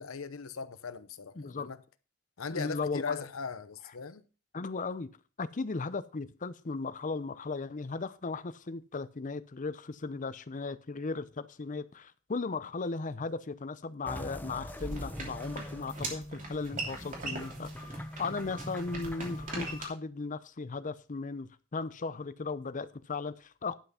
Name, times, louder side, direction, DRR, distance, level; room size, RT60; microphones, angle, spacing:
voice 1, 0.0-1.8 2.4-4.2, left 5 dB, 80° left, 0.8 m, -39 dB
voice 2, 1.4-1.7 2.5-3.2 4.5-5.1 5.4-23.7, left 4 dB, 40° left, 0.6 m, -37 dB
sound 1, 14.0-19.8, equal, 10° left, 1.0 m, -43 dB
sound 2, 14.8-19.8, right 2 dB, 40° right, 3.0 m, -41 dB
11.5 x 5.9 x 5.6 m
head